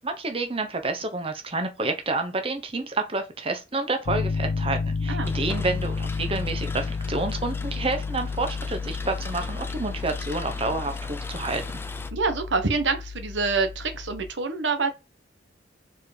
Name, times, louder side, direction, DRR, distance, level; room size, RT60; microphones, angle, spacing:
voice 1, 0.0-11.6, right 3 dB, 30° right, 1.0 m, -29 dB
Piano, 4.1-14.3, left 4 dB, 80° left, 0.5 m, -31 dB
sound 1, 5.2-12.1, left 2 dB, 15° left, 0.4 m, -41 dB
voice 2, 12.1-14.9, right 4 dB, 85° right, 1.0 m, -26 dB
4.7 x 4.4 x 4.9 m
head